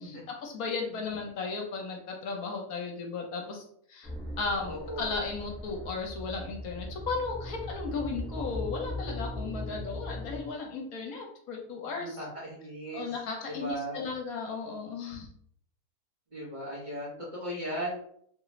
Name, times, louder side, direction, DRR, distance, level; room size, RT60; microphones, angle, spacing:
voice 1, 0.0-3.6 3.9-4.1 4.4-12.2 12.9-15.3, left 4 dB, 70° left, 1 dB, 1.1 m, -35 dB
sound 1, 4.0-10.4, left 1 dB, ahead, 0.6 m, -39 dB
voice 2, 4.6-5.3 12.0-13.1 13.5-14.0 16.3-18.1, right 1 dB, 35° right, -7 dB, 1.1 m, -37 dB
3.0 x 2.4 x 3.0 m, 0.65 s
omnidirectional pair, 1.6 m